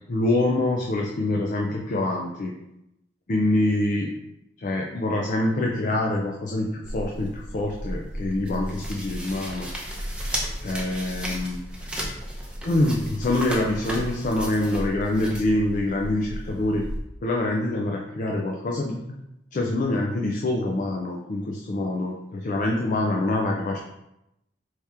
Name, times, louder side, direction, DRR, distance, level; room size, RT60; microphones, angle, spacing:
voice 1, 0.1-2.5 3.3-4.1 4.6-9.7 10.6-11.6 12.6-16.8 17.2-19.2 19.5-23.8, left 1 dB, 45° left, 0 dB, 0.5 m, -25 dB
sound 1, 6.8-17.0, equal, 5° right, 0.7 m, -34 dB
4.7 x 2.9 x 3.5 m, 0.86 s
head